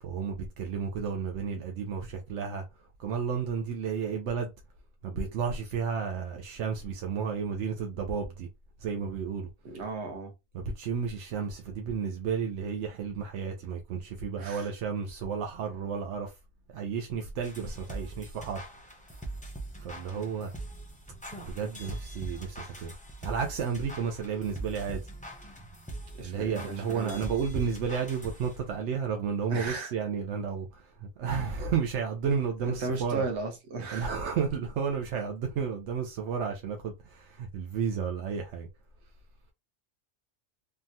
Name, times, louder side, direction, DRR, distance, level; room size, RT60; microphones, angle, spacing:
voice 1, 0.0-4.5 5.0-8.5 8.8-9.5 10.5-16.3 16.7-19.0 19.8-20.5 21.4-23.0 23.2-25.0 26.2-33.2 33.9-38.7, right 6 dB, 85° right, 0.9 m, -32 dB
voice 2, 9.6-10.3 14.4-14.7 26.1-27.2 29.5-29.9 32.6-34.1, right 3 dB, 70° right, 1.2 m, -35 dB
sound 1, 17.4-28.8, right 2 dB, 10° left, 0.5 m, -42 dB
3.4 x 2.2 x 2.6 m
omnidirectional pair, 1.2 m